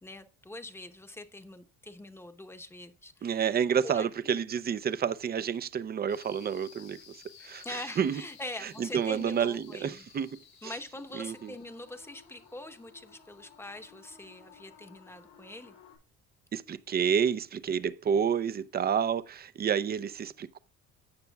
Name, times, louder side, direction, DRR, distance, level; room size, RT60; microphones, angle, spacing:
voice 1, 0.0-3.5 3.9-4.4 7.6-10.1 10.6-15.7, left 1 dB, 10° left, 0.9 m, -43 dB
voice 2, 3.2-8.2 8.6-10.3 10.6-10.7 11.1-11.5 16.5-20.6, right 7 dB, 30° right, 0.5 m, -29 dB
sound 1, 6.1-16.0, left 7 dB, 85° left, 6.1 m, -56 dB
16.5 x 6.6 x 2.3 m
cardioid pair, 130°, 32 cm